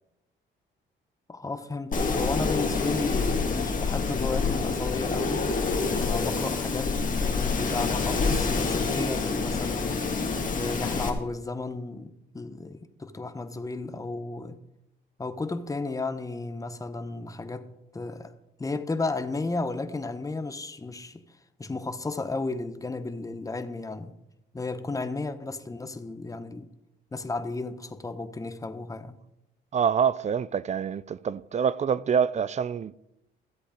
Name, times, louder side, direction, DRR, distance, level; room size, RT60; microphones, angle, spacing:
voice 1, 1.3-5.5 6.0-10.1 10.5-14.6 15.2-18.3 18.6-21.2 21.6-24.1 24.5-26.7 27.1-29.2, left 3 dB, 15° left, 0.9 m, -33 dB
Wind, 1.9-11.1, left 4 dB, 40° left, 1.9 m, -27 dB
voice 2, 29.7-33.0, right 7 dB, 35° right, 0.4 m, -26 dB
13.5 x 7.9 x 5.0 m
cardioid pair, 90°, 20 cm